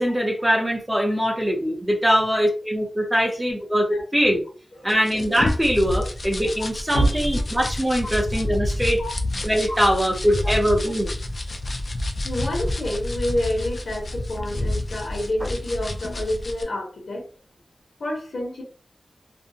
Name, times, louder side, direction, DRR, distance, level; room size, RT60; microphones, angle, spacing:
voice 1, 0.0-4.4 4.8-9.0 9.4-11.1 15.4-15.5, equal, 10° right, 0 dB, 0.6 m, -22 dB
sound 1, 4.9-16.6, left 1 dB, 45° left, 0.4 m, -29 dB
voice 2, 12.2-17.3 18.0-18.6, equal, 75° left, -1 dB, 1.1 m, -28 dB
2.5 x 2.1 x 2.7 m, 0.38 s
wide cardioid pair, 115°, 0 cm